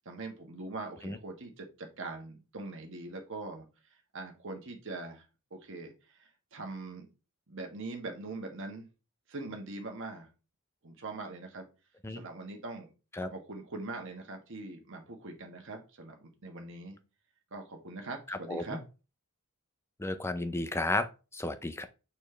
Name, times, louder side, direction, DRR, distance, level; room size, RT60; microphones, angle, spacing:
voice 1, 0.0-3.6 4.1-5.2 5.5-7.1 7.5-8.9 9.3-10.3 10.8-11.7 12.1-12.9 13.2-17.0 17.5-18.8, right 2 dB, 60° right, 1.4 m, -42 dB
voice 2, 18.3-18.8 20.0-21.9, left 2 dB, 10° left, 0.5 m, -33 dB
7.1 x 4.3 x 3.3 m
head